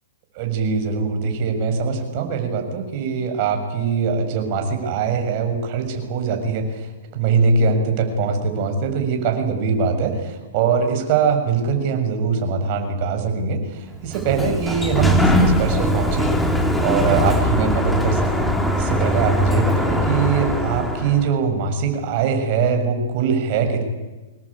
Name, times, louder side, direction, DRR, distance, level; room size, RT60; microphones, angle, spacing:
voice 1, 0.3-16.3 16.8-23.8, right 5 dB, 45° right, 5 dB, 6.7 m, -22 dB
Sliding door, 13.9-21.3, equal, 5° left, 3.2 m, -20 dB
26.0 x 20.5 x 8.7 m, 1.2 s
hypercardioid pair, 135°, 0 cm